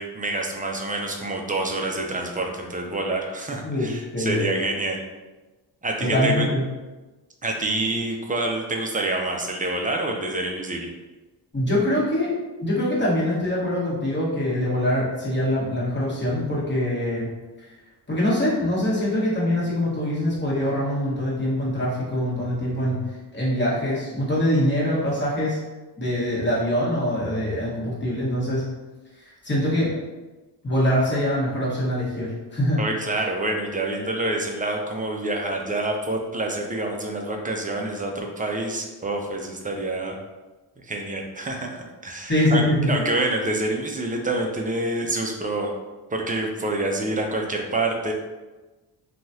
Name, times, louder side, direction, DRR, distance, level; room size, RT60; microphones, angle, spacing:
voice 1, 0.0-5.0 5.8-6.5 7.4-10.9 32.8-40.2 40.8-45.7 46.1-48.1, right 2 dB, 20° right, 1 dB, 0.4 m, -27 dB
voice 2, 3.6-4.4 6.0-6.6 11.5-12.3 12.6-17.3 17.6-17.7 18.1-25.6 26.0-28.6 29.2-29.9 30.6-32.8 42.3-43.0, left 1 dB, 25° left, -7 dB, 1.4 m, -24 dB
3.0 x 2.4 x 2.7 m, 1.2 s
cardioid pair, 70°, 43 cm